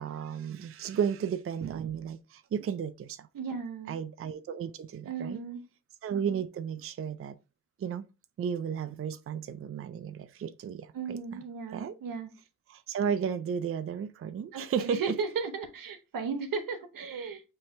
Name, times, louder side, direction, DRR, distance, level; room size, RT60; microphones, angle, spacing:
voice 1, 0.0-3.3 3.9-5.4 6.0-7.4 7.8-8.1 8.4-11.4 11.7-11.9 12.7-15.1, right 7 dB, 45° right, 0.4 m, -33 dB
voice 2, 3.3-4.0 5.1-5.6 10.9-12.3 14.5-17.4, right 5 dB, 85° right, 1.0 m, -35 dB
5.6 x 2.8 x 3.2 m
cardioid pair, 75°, 33 cm